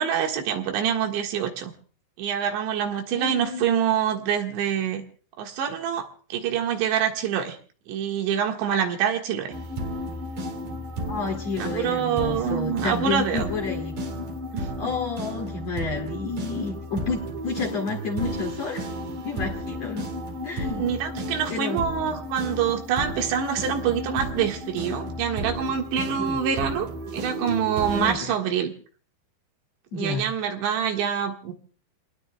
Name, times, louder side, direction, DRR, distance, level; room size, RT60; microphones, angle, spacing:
voice 1, 0.0-1.7 2.2-5.0 5.4-7.6 7.9-9.5 11.6-13.5 14.5-14.7 20.8-26.9 27.1-28.7 29.9-31.5, right 8 dB, 80° right, 3 dB, 3.9 m, -26 dB
voice 2, 3.1-3.7 11.1-13.9 14.8-18.8 19.2-20.1 20.4-20.8 21.5-21.8 26.2-26.4 27.9-28.3 29.9-30.2, left 4 dB, 50° left, 1 dB, 2.5 m, -30 dB
sound 1, 9.5-28.1, equal, 50° right, 3.5 m, -33 dB
29.5 x 19.5 x 2.3 m, 0.43 s
omnidirectional pair, 5.1 m